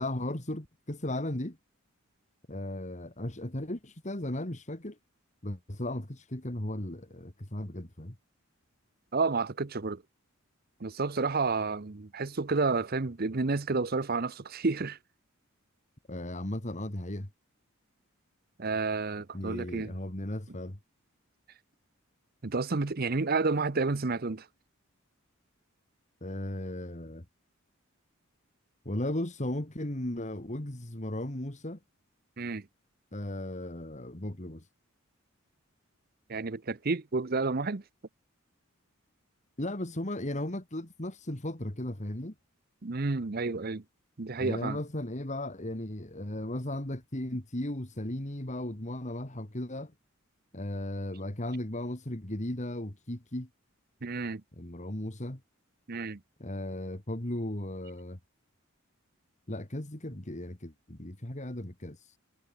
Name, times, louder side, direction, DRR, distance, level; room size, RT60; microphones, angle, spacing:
voice 1, 0.0-1.6 2.5-5.0 5.4-8.2 16.1-17.3 19.3-20.8 26.2-27.3 28.9-31.8 33.1-34.7 39.6-42.3 44.4-49.9 50.5-53.5 54.6-55.4 56.4-58.2 59.5-62.2, left 1 dB, 35° left, 2.3 m, -36 dB
voice 2, 9.1-10.0 10.8-15.0 18.6-19.9 22.4-24.5 32.4-32.6 36.3-37.8 42.8-43.8 44.2-44.8 54.0-54.4 55.9-56.2, right 3 dB, 45° right, 0.8 m, -30 dB
head